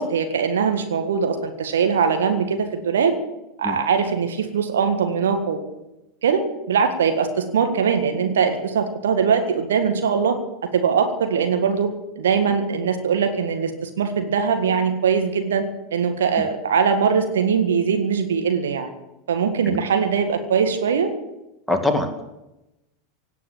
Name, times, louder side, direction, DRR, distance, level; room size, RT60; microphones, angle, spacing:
voice 1, 0.0-3.2 3.6-5.6 6.2-10.4 10.7-18.9 19.3-21.1, right 6 dB, 70° right, 6 dB, 1.8 m, -21 dB
voice 2, 21.7-22.2, left 2 dB, ahead, 4 dB, 2.1 m, -23 dB
17.5 x 8.3 x 8.8 m, 0.95 s
figure-of-eight pair, 85°, 0 cm